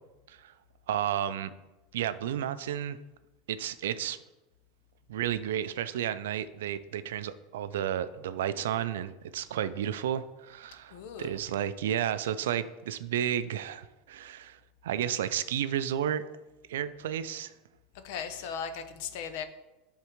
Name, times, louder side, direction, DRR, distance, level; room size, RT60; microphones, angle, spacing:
voice 1, 0.9-1.5 1.9-3.0 3.5-4.2 5.1-16.2 16.7-17.5, right 10 dB, 90° right, 0.3 m, -32 dB
voice 2, 10.9-11.4 18.0-19.4, left 7 dB, 70° left, 0.6 m, -37 dB
11.0 x 3.6 x 3.0 m
supercardioid pair, 120°, 0 cm